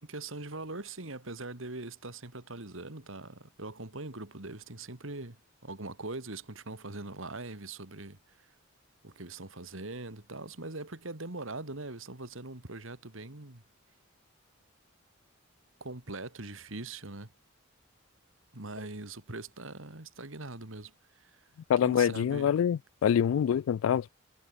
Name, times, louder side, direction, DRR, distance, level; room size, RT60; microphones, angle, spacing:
voice 1, 0.0-8.5 9.0-13.6 15.8-17.3 18.5-21.4 21.8-22.5, right 2 dB, 70° right, 2.5 m, -42 dB
voice 2, 21.7-24.1, left 8 dB, 75° left, 0.3 m, -26 dB
head